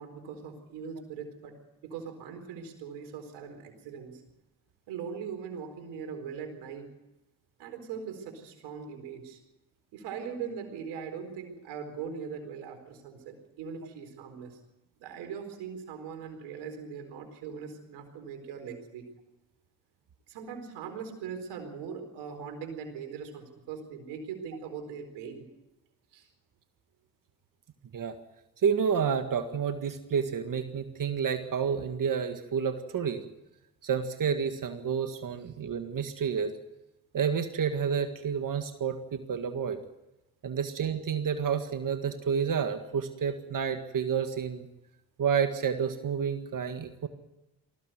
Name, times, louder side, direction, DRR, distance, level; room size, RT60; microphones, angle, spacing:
voice 1, 0.0-1.6 1.8-4.2 4.9-6.9 7.6-9.4 9.9-14.6 15.0-19.1 20.3-25.5 26.1-26.3, right 6 dB, 85° right, 5 dB, 4.3 m, -40 dB
voice 2, 28.6-33.2 33.8-36.5 37.1-39.8 40.4-44.7 45.2-47.1, right 7 dB, 55° right, 7 dB, 1.8 m, -30 dB
19.5 x 15.5 x 9.1 m, 0.99 s
supercardioid pair, 55°, 39 cm